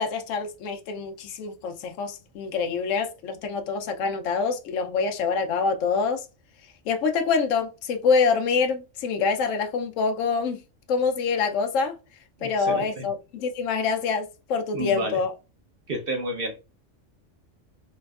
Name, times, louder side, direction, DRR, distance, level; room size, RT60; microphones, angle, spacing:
voice 1, 0.0-6.3 6.9-10.6 10.9-11.9 12.4-15.3, left 5 dB, 80° left, 1.0 m, -25 dB
voice 2, 12.4-13.1 14.7-15.2 15.9-16.6, right 1 dB, 50° right, 1.0 m, -30 dB
4.2 x 3.0 x 2.3 m
omnidirectional pair, 1.3 m